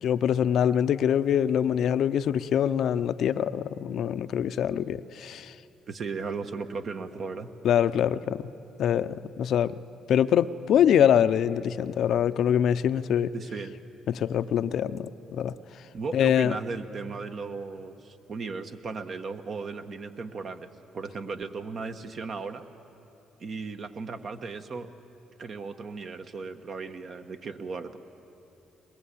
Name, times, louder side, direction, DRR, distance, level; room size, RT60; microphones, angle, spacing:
voice 1, 0.0-5.5 7.6-8.4 8.8-9.8 10.1-13.3 14.1-15.5 16.1-16.6, left 9 dB, 70° left, 0.5 m, -24 dB
voice 2, 5.9-7.5 13.3-13.7 15.9-20.7 20.9-22.7 23.4-24.9 25.4-28.0, right 4 dB, 55° right, 1.2 m, -36 dB
21.5 x 20.5 x 8.4 m
supercardioid pair, 75°, 0 cm